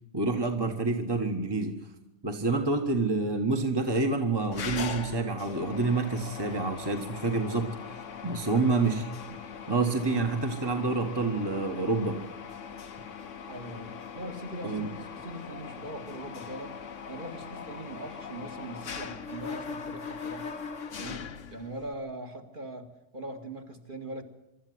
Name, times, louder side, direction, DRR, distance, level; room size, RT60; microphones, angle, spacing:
voice 1, 0.1-1.8 2.2-7.7 8.2-9.0 9.3-12.2 14.6-14.9, right 3 dB, 20° right, 4 dB, 1.5 m, -28 dB
Mechanisms, 4.5-21.9, left 6 dB, 80° left, 1.5 m, -40 dB
voice 2, 8.4-8.8 13.5-20.6 21.0-21.2 21.5-24.2, right 1 dB, 40° right, 3 dB, 2.3 m, -41 dB
24.5 x 13.0 x 9.5 m, 0.91 s
omnidirectional pair, 1.3 m